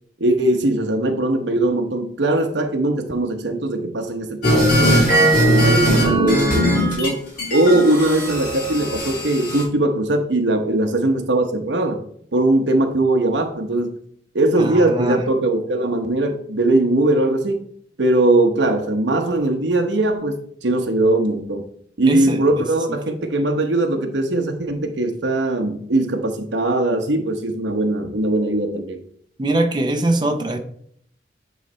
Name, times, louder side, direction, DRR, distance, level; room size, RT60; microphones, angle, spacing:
voice 1, 0.2-7.2 7.5-12.0 12.3-14.0 14.3-17.7 18.0-21.6 22.0-29.0, right 2 dB, 90° right, 0.9 m, -20 dB
sound 1, 4.4-7.1 7.4-9.6, right 1 dB, 50° left, 3.1 m, -18 dB
voice 2, 14.6-15.2 22.1-22.7 29.4-30.6, right 2 dB, 25° right, 0.7 m, -22 dB
9.3 x 3.3 x 4.3 m
head